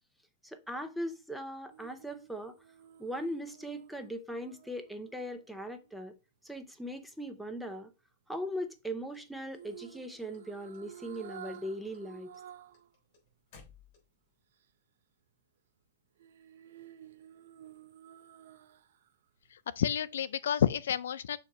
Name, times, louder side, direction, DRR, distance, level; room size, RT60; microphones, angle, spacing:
voice 1, 0.4-2.6 3.0-6.1 6.4-7.9 8.3-12.3, equal, ahead, 0.5 m, -39 dB
sound 1, 1.7-5.9 9.5-12.9 13.3-13.4 16.2-19.1 19.4-19.6, right 10 dB, 70° right, 0.6 m, -52 dB
sound 2, 9.1-10.4 10.7-11.3 11.5-14.3, left 5 dB, 40° left, 3.4 m, -59 dB
voice 2, 19.5-21.4, left 9 dB, 85° left, 0.5 m, -30 dB
7.0 x 3.0 x 4.8 m
supercardioid pair, 160°, 0 cm